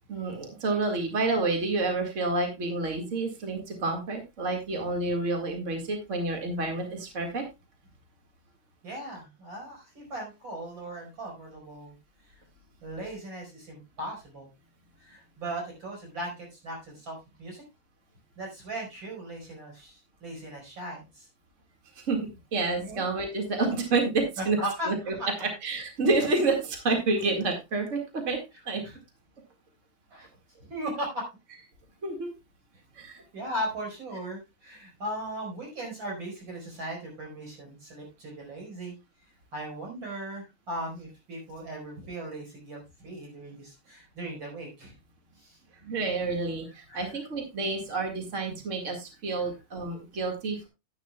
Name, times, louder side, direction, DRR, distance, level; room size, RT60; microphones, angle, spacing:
voice 1, 0.1-7.4 21.9-22.2 22.5-24.6 24.8-28.4 28.6-28.8 32.0-32.3 32.9-33.2 45.8-50.7, right 3 dB, 90° right, 4 dB, 0.6 m, -29 dB
voice 2, 8.8-12.0 12.8-14.5 15.0-17.6 18.4-21.3 22.8-23.0 24.4-24.9 25.2-25.3 28.8-29.0 30.1-30.3 30.6-31.2 33.3-38.9 39.5-44.9 45.4-45.6 46.9-47.1 49.4-49.5, right 1 dB, 25° right, 0 dB, 5.2 m, -38 dB
12.0 x 9.7 x 2.3 m, 0.23 s
omnidirectional pair, 4.8 m